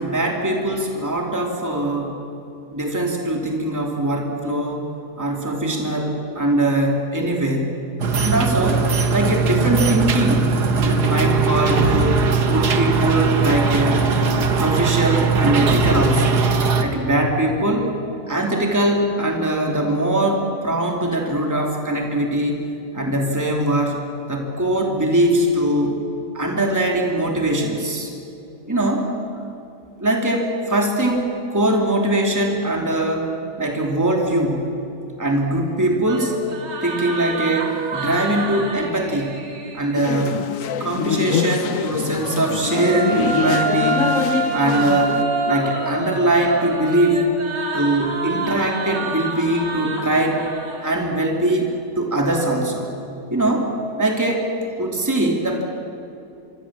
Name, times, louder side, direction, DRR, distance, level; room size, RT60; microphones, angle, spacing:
voice 1, 0.0-2.2 2.7-4.9 5.2-7.7 8.2-8.8 9.1-14.1 14.6-16.4 16.8-17.9 18.3-22.7 22.9-24.0 24.3-26.0 26.3-28.1 28.7-29.1 30.0-33.3 33.6-34.6 35.2-36.4 36.8-39.4 39.7-40.4 40.8-44.0 44.5-45.2 45.5-47.3 47.7-50.4 50.8-52.9 53.3-54.5 54.8-55.6, right 1 dB, 10° right, 0 dB, 2.8 m, -21 dB
sound 1, 8.0-16.8, right 4 dB, 70° right, 2.0 m, -19 dB
sound 2, 36.1-40.1 41.9-51.4, right 3 dB, 85° right, 3.1 m, -27 dB
sound 3, 40.0-45.2, left 7 dB, 60° left, 1.0 m, -24 dB
26.0 x 24.5 x 7.5 m, 2.8 s
omnidirectional pair, 1.8 m